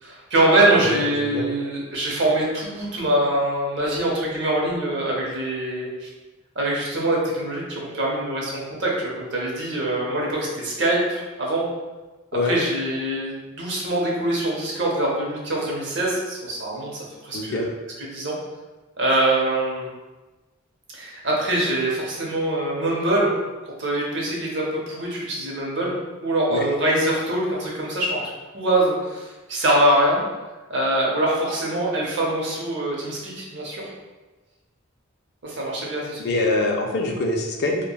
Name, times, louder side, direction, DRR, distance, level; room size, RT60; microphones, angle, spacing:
voice 1, 0.0-6.1 6.6-11.7 12.4-17.7 18.0-18.4 19.0-19.9 20.9-23.3 23.8-26.0 26.2-30.2 30.7-33.9 35.4-36.2, right 1 dB, 55° right, -3 dB, 0.7 m, -23 dB
voice 2, 17.3-17.7 26.5-26.6 36.2-37.8, left 2 dB, 50° left, 1 dB, 0.4 m, -24 dB
3.3 x 2.1 x 2.3 m, 1.2 s
head